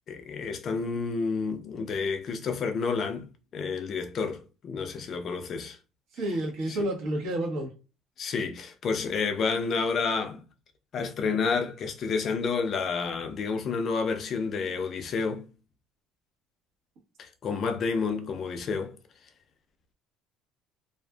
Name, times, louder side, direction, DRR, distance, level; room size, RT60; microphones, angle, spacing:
voice 1, 0.1-3.3 3.5-5.8 6.7-6.8 8.2-10.4 10.9-15.5 17.2-19.0, left 5 dB, 40° left, 0.4 m, -30 dB
voice 2, 6.2-7.7, right 1 dB, 70° right, 1.1 m, -29 dB
2.5 x 2.4 x 2.3 m
cardioid pair, 135°, 0 cm